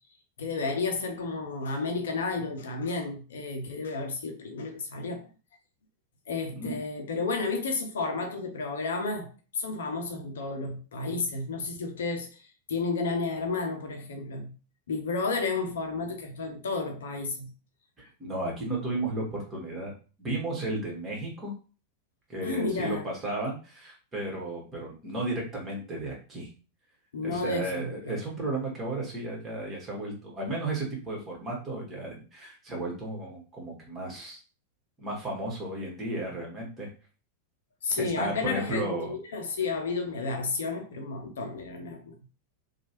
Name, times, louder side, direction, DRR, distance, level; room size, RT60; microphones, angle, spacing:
voice 1, 0.4-5.3 6.3-14.5 14.9-17.5 22.4-23.1 27.1-28.2 37.8-42.1, left 4 dB, 65° left, 0.6 m, -32 dB
voice 2, 18.0-19.9 20.2-21.5 22.3-26.5 27.2-34.4 35.0-36.9 38.0-39.2, right 2 dB, 20° right, 1.4 m, -34 dB
2.9 x 2.3 x 2.9 m
figure-of-eight pair, 90°, 0 cm